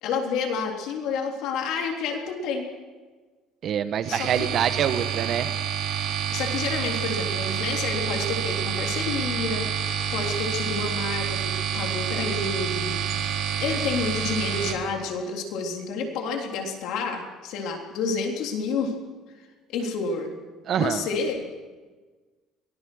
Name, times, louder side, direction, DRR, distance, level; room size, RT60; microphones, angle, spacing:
voice 1, 0.0-2.7 4.1-4.5 6.3-13.0 13.6-18.9 19.7-20.3 20.7-21.5, left 4 dB, 70° left, 2 dB, 3.5 m, -29 dB
voice 2, 3.6-5.5 20.7-21.1, right 9 dB, 40° right, 11 dB, 1.2 m, -25 dB
sound 1, 4.0-14.7, right 9 dB, 90° right, 3.5 m, -28 dB
23.0 x 19.5 x 6.4 m, 1.3 s
cardioid pair, 165°, 0 cm